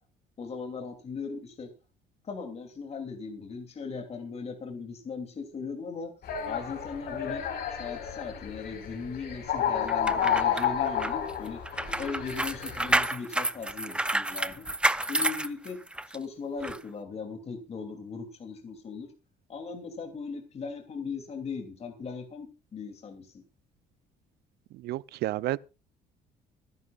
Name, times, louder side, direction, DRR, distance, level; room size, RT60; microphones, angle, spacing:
voice 1, 0.4-1.7 2.2-6.1 6.5-7.4 7.7-11.6 12.0-14.6 15.1-15.8 16.1-19.1 19.5-23.4, left 5 dB, 40° left, 2.9 m, -38 dB
sound 1, 6.2-13.0, left 8 dB, 65° left, 4.8 m, -31 dB
sound 2, 9.9-16.2 16.6-16.8, right 1 dB, 5° right, 0.6 m, -29 dB
voice 2, 24.8-25.6, right 15 dB, 75° right, 0.6 m, -30 dB
25.5 x 10.5 x 2.4 m
cardioid pair, 110°, 17 cm